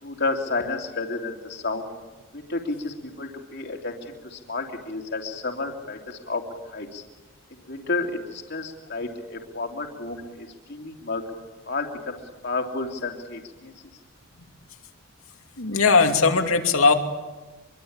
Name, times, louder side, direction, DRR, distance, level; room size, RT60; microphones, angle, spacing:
voice 1, 0.0-1.9 2.3-6.4 6.7-7.0 7.7-11.2 11.7-13.7, left 3 dB, 50° left, 3 dB, 2.9 m, -31 dB
voice 2, 15.6-16.9, left 4 dB, 75° left, 5 dB, 2.7 m, -19 dB
25.5 x 23.5 x 8.8 m, 1.1 s
head